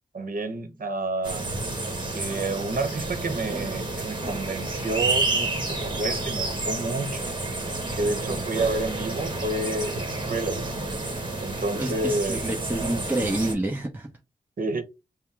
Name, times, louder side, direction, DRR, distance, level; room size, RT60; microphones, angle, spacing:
voice 1, 0.1-1.6 2.1-7.4 7.9-10.8 11.4-12.4 14.6-14.8, right 2 dB, 70° right, 0.9 m, -30 dB
sound 1, 1.2-13.5, right 2 dB, 30° right, 1.3 m, -30 dB
voice 2, 11.7-14.1, right 1 dB, 10° right, 0.9 m, -28 dB
5.5 x 2.1 x 3.4 m
wide cardioid pair, 70°, 15 cm